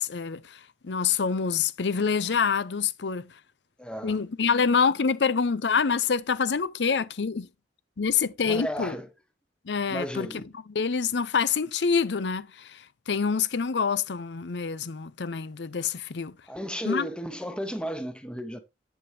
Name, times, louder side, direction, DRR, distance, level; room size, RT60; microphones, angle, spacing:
voice 1, 0.0-3.3 4.0-7.5 8.0-9.0 9.7-16.3 16.8-17.1, left 5 dB, 80° left, 0.6 m, -26 dB
voice 2, 3.8-4.2 8.5-9.1 9.9-10.5 16.5-18.6, equal, 5° left, 1.0 m, -34 dB
8.1 x 7.9 x 2.8 m
head